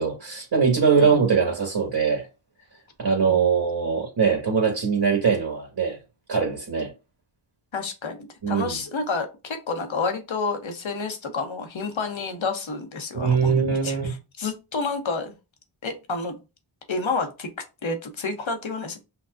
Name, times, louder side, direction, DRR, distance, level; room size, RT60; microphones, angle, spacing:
voice 1, 0.0-2.3 3.0-6.0 6.3-6.9 8.4-8.8 13.1-14.2, right 6 dB, 50° right, 1.8 m, -22 dB
voice 2, 7.7-15.3 15.8-16.4 16.9-17.5 17.8-19.0, left 4 dB, 65° left, 1.0 m, -29 dB
5.7 x 2.3 x 2.5 m
wide cardioid pair, 50°, 50 cm